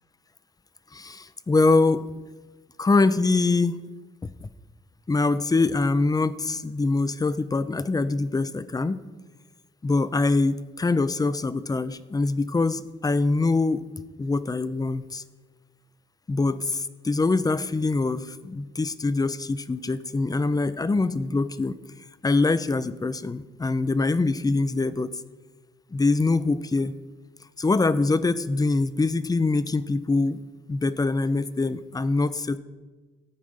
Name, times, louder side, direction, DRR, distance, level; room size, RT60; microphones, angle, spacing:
voice 1, 0.9-2.0 2.8-3.8 4.2-4.3 5.1-9.0 9.8-13.8 14.2-15.2 16.3-21.7 22.2-25.2 25.9-26.9 27.6-30.4 30.7-32.6, left 3 dB, 20° left, 14 dB, 0.6 m, -24 dB
15.0 x 5.1 x 9.5 m, 1.3 s
cardioid pair, 90°, 20 cm